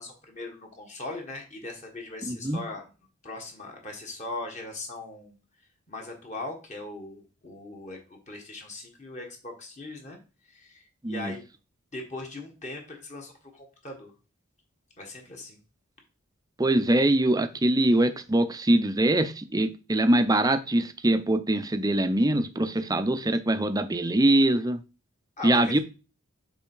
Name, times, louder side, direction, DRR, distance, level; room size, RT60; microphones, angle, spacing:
voice 1, 0.0-2.9 3.2-5.3 5.9-10.2 10.5-11.4 11.9-14.1 15.0-15.6 25.4-25.8, left 2 dB, 35° left, 1.4 m, -39 dB
voice 2, 2.3-2.6 11.0-11.3 16.6-24.8 25.4-25.8, right 1 dB, 15° right, 0.5 m, -23 dB
7.3 x 3.5 x 4.5 m
head